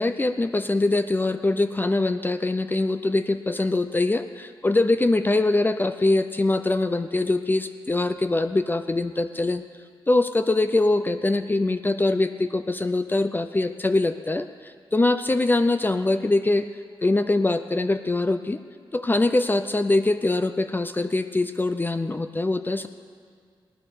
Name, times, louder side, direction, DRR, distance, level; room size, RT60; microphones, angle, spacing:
voice 1, 0.0-9.6 10.1-16.7 17.0-18.6 18.9-22.9, left 2 dB, 20° left, 10 dB, 0.5 m, -23 dB
18.5 x 10.0 x 6.7 m, 2.1 s
wide cardioid pair, 85°, 9 cm